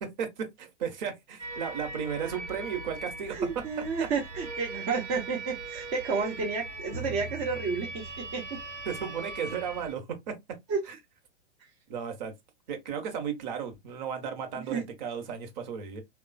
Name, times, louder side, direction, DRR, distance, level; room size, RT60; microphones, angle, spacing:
voice 1, 0.0-3.6 4.0-4.1 6.4-6.5 8.8-10.4 10.9-11.0 11.9-12.3 12.7-16.0, right 7 dB, 40° right, 1.0 m, -35 dB
sound 1, 1.4-9.9, right 3 dB, 85° right, 1.0 m, -40 dB
voice 2, 3.3-8.6 10.7-10.8 14.7-14.8, right 4 dB, 20° right, 0.5 m, -31 dB
3.6 x 2.3 x 2.2 m
figure-of-eight pair, 105°, 34 cm